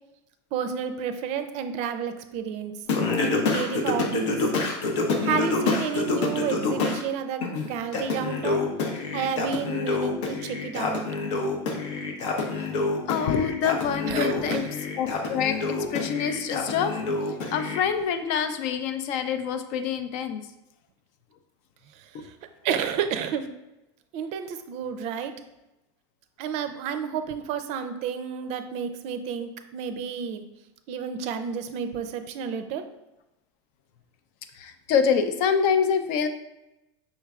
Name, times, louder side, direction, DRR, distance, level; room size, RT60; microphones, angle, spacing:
voice 1, 0.5-2.7 3.2-4.4 5.2-8.6 9.1-11.1 14.0-14.6 22.6-23.5 24.1-25.3 26.4-30.4 30.9-32.8, right 7 dB, 50° right, 9 dB, 0.4 m, -30 dB
Singing, 2.9-7.0 7.4-17.8, left 3 dB, 80° left, 0.8 m, -27 dB
voice 2, 13.1-14.6 15.0-17.0 17.5-20.4 34.5-36.3, left 7 dB, 55° left, 8 dB, 0.5 m, -26 dB
5.5 x 3.2 x 2.4 m, 0.94 s
supercardioid pair, 115°, 14 cm